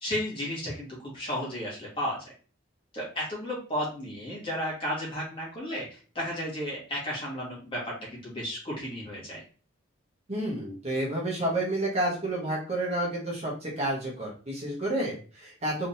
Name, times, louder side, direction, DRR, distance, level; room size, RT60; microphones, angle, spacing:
voice 1, 0.0-2.3 2.9-9.4, equal, 25° left, -5 dB, 1.7 m, -33 dB
voice 2, 10.3-15.9, right 1 dB, 35° right, -4 dB, 1.2 m, -30 dB
3.6 x 3.4 x 2.8 m, 0.38 s
head